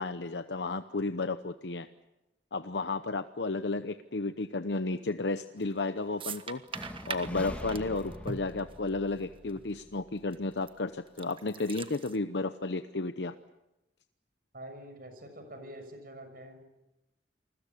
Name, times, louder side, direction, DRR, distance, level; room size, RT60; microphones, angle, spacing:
voice 1, 0.0-1.9 2.5-6.6 7.1-13.3, left 3 dB, 75° left, 10 dB, 0.9 m, -33 dB
sound 1, 5.6-5.8 6.2-9.2 9.5-9.6 10.3-10.7 11.1-12.2, right 5 dB, 30° right, 1.4 m, -41 dB
sound 2, 6.7-10.6, equal, 10° left, 2.3 m, -44 dB
voice 2, 14.5-16.6, right 1 dB, 55° right, 7 dB, 6.5 m, -46 dB
28.5 x 21.0 x 8.5 m, 0.93 s
head